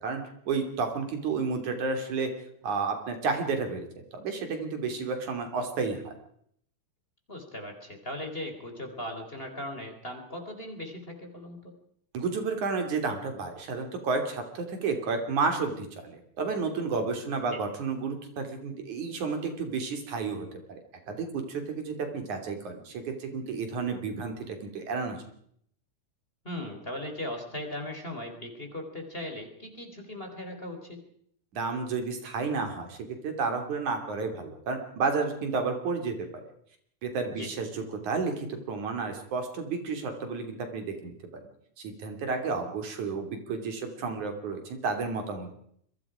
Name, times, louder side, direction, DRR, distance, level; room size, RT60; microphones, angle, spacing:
voice 1, 0.0-2.3 2.6-3.9 4.1-6.1 12.1-20.8 21.1-24.3 24.7-25.2 31.5-36.2 37.0-41.1 41.8-45.5, right 4 dB, 75° right, 5 dB, 4.4 m, -31 dB
voice 2, 7.3-11.7 17.5-17.6 26.4-31.0 37.3-37.5, left 1 dB, 20° left, 3 dB, 3.9 m, -38 dB
28.0 x 22.5 x 5.1 m, 0.68 s
omnidirectional pair, 3.5 m